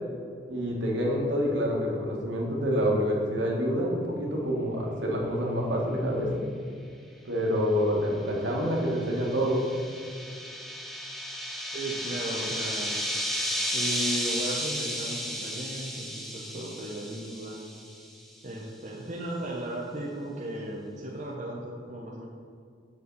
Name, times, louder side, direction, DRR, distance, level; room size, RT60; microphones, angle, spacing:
voice 1, 0.5-6.4 7.2-9.6, equal, 75° right, -2 dB, 1.7 m, -27 dB
sound 1, 8.3-18.1, equal, ahead, 0.7 m, -33 dB
voice 2, 11.7-12.9 13.7-17.7 18.4-22.2, right 1 dB, 40° right, -3 dB, 0.9 m, -36 dB
6.9 x 6.9 x 4.1 m, 2.3 s
head